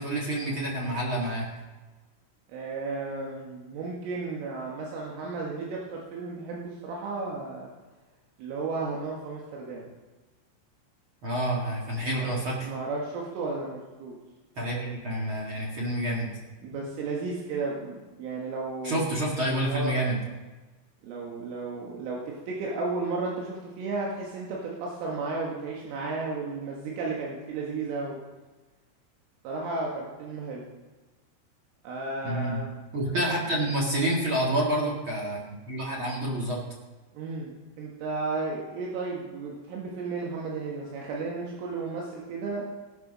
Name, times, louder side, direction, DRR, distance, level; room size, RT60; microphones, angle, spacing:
voice 1, 0.0-1.5 11.2-12.7 14.5-16.3 18.8-20.2 32.2-32.6 32.9-36.6, right 1 dB, 55° right, -4 dB, 1.4 m, -28 dB
voice 2, 2.5-7.7 8.4-9.9 12.0-14.2 16.6-19.0 19.6-20.0 21.0-28.2 29.4-30.7 31.8-32.7 37.2-42.6, right 3 dB, 80° right, -3 dB, 4.1 m, -34 dB
17.5 x 6.9 x 6.2 m, 1.2 s
omnidirectional pair, 5.7 m